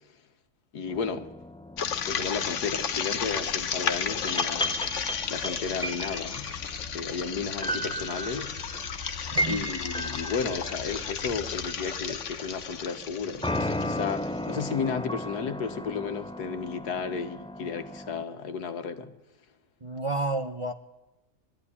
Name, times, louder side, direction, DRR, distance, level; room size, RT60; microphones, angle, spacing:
voice 1, 0.7-1.3 2.1-4.8 5.3-6.5 6.9-8.5 9.4-19.1, left 5 dB, 85° left, 8 dB, 1.9 m, -33 dB
sound 1, 0.9-12.5 13.4-18.2, equal, 5° left, 0.5 m, -36 dB
sound 2, 1.8-14.6, left 7 dB, 55° left, 1.2 m, -33 dB
voice 2, 9.3-9.6 19.8-20.7, right 2 dB, 25° right, 7 dB, 0.8 m, -30 dB
21.0 x 13.0 x 9.9 m, 0.98 s
omnidirectional pair, 1.6 m